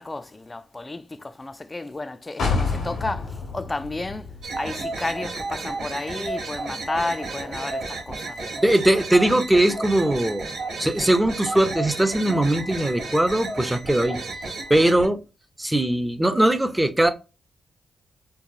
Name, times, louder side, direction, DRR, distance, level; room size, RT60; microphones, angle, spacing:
voice 1, 0.0-8.5, left 2 dB, 25° left, 0.4 m, -32 dB
sound 1, 2.4-6.1 6.5-6.6, left 4 dB, 90° left, 1.4 m, -30 dB
sound 2, 4.4-15.1, right 3 dB, 85° right, 1.1 m, -32 dB
voice 2, 8.6-10.5 10.8-14.2 14.7-15.2 15.6-17.1, right 1 dB, 10° right, 0.7 m, -20 dB
4.6 x 2.3 x 2.7 m
cardioid pair, 75°, 0 cm